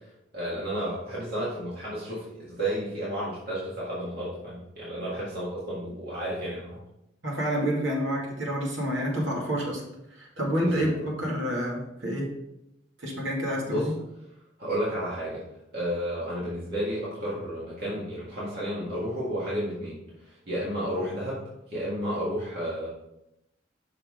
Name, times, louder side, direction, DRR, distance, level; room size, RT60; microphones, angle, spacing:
voice 1, 0.3-6.8 10.7-11.0 13.7-13.9 14.6-15.4 15.7-22.9, equal, 55° right, -8 dB, 1.9 m, -32 dB
voice 2, 7.2-9.8 10.1-12.3 13.0-13.9, equal, 85° right, -2 dB, 2.1 m, -28 dB
6.1 x 5.7 x 3.7 m, 0.85 s
head